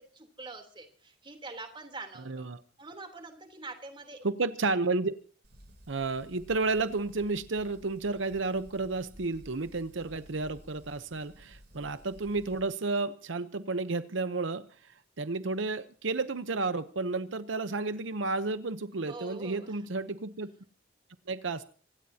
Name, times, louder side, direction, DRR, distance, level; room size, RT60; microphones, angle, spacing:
voice 1, 0.0-2.5 2.8-4.3 19.1-19.7, right 3 dB, 25° right, 5 dB, 3.4 m, -45 dB
voice 2, 2.3-2.6 4.2-5.1 5.9-14.7 15.2-20.5 21.3-21.6, right 3 dB, 80° right, 12 dB, 0.8 m, -32 dB
Fire, 5.4-12.6, equal, 60° right, 7.0 m, -55 dB
26.0 x 17.5 x 2.8 m, 0.40 s
head